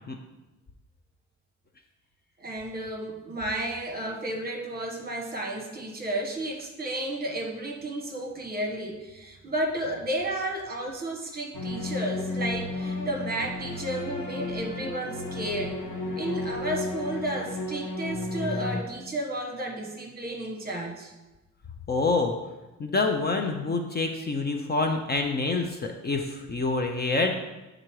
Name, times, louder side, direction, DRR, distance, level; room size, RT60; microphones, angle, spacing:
voice 1, 2.4-15.8 16.2-21.1, right 1 dB, 30° right, 1 dB, 1.1 m, -32 dB
sound 1, 11.5-18.8, left 2 dB, 85° left, 1.4 m, -33 dB
voice 2, 21.9-22.3 22.8-27.3, left 3 dB, 35° left, 3 dB, 0.6 m, -26 dB
8.9 x 3.8 x 4.7 m, 1.1 s
wide cardioid pair, 145°, 30 cm